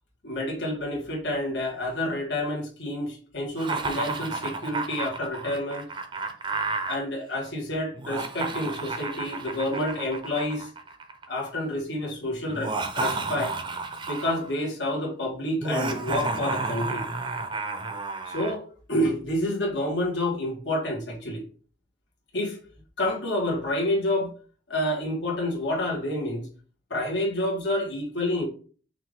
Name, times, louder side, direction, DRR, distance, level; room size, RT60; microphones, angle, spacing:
voice 1, 0.2-5.9 6.9-10.7 11.3-13.5 14.1-17.0 18.3-21.4 22.3-22.6 23.0-24.3 24.7-26.5 26.9-28.5, left 1 dB, 75° left, -1 dB, 1.6 m, -29 dB
Laughter, 3.6-7.0 7.9-11.3 12.5-14.5 15.6-18.6, right 3 dB, 25° right, 0.5 m, -31 dB
5.7 x 2.5 x 3.5 m, 0.42 s
head